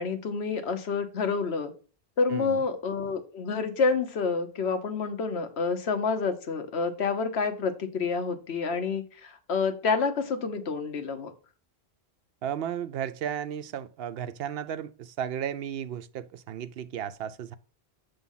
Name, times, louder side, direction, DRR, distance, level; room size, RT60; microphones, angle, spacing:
voice 1, 0.0-1.7 2.2-11.3, left 5 dB, 90° left, 1.2 m, -28 dB
voice 2, 12.4-17.6, right 9 dB, 75° right, 0.8 m, -34 dB
7.2 x 3.4 x 5.4 m
omnidirectional pair, 1.1 m